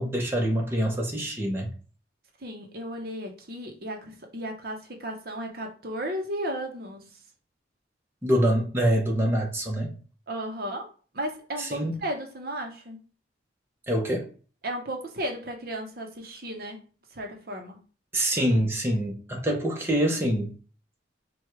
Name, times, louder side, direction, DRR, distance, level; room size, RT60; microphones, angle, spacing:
voice 1, 0.0-1.7 8.2-10.0 11.6-12.0 13.9-14.3 18.1-20.5, equal, 10° right, 0.8 m, -25 dB
voice 2, 2.4-7.1 10.3-10.9 11.1-13.0 14.6-16.8 17.1-17.8, right 1 dB, 50° right, 0.8 m, -34 dB
4.6 x 2.3 x 4.6 m
head